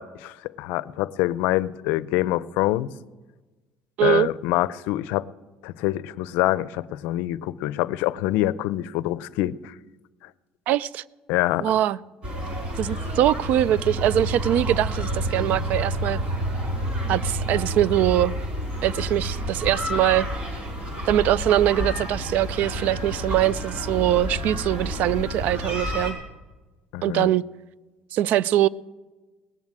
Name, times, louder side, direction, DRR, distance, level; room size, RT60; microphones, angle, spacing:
voice 1, 0.0-2.9 4.0-5.3 5.6-9.7 11.3-11.7 26.9-27.3, left 16 dB, 85° left, 0.5 m, -25 dB
voice 2, 4.0-4.3 10.7-11.0 11.6-12.0 12.8-16.2 17.1-18.4 18.8-20.3 21.1-26.2 27.0-27.4 28.1-28.7, right 12 dB, 60° right, 0.4 m, -22 dB
sound 1, 12.2-26.1, equal, 40° right, 4.7 m, -29 dB
18.0 x 7.3 x 8.9 m
cardioid pair, 130°, 3 cm